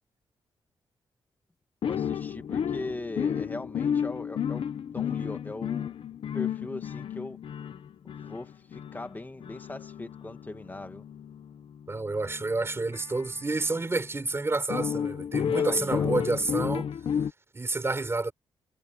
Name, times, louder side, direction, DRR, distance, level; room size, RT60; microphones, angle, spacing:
sound 1, 1.8-13.9 14.7-17.3, left 8 dB, 70° left, 1.2 m, -32 dB
voice 1, 1.8-4.7 4.9-5.9 6.3-7.4 8.2-11.0 15.5-16.1, left 2 dB, 20° left, 2.5 m, -40 dB
voice 2, 11.9-16.9 17.5-18.3, right 3 dB, 25° right, 6.0 m, -29 dB
cardioid pair, 85°, 10 cm